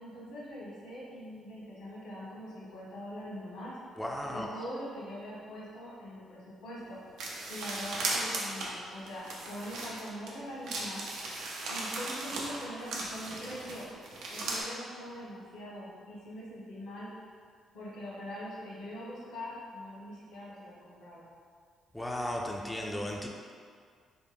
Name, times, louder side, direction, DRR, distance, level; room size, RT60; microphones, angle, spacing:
voice 1, 0.0-3.8 4.3-7.0 7.5-11.1 11.7-13.9 14.3-17.1 17.7-21.3, equal, 90° left, -8 dB, 1.3 m, -43 dB
voice 2, 4.0-4.5 21.9-23.3, left 1 dB, 5° left, -1 dB, 0.3 m, -35 dB
sound 1, 7.2-10.3 10.7-14.6, right 2 dB, 85° right, 0.5 m, -37 dB
3.4 x 2.1 x 3.4 m, 2.1 s
cardioid pair, 90°, 0 cm